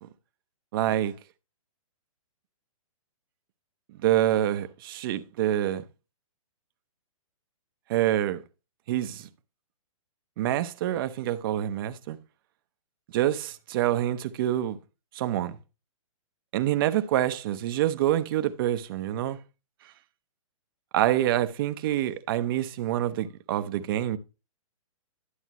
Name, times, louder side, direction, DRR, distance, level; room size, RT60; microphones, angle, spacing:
voice 1, 0.7-1.1 4.0-5.8 7.9-8.4 8.9-9.3 10.4-12.2 13.1-14.8 15.1-15.6 16.5-19.4 20.9-24.2, right 12 dB, 40° right, 0.7 m, -26 dB
11.0 x 7.2 x 3.0 m
hypercardioid pair, 155°, 18 cm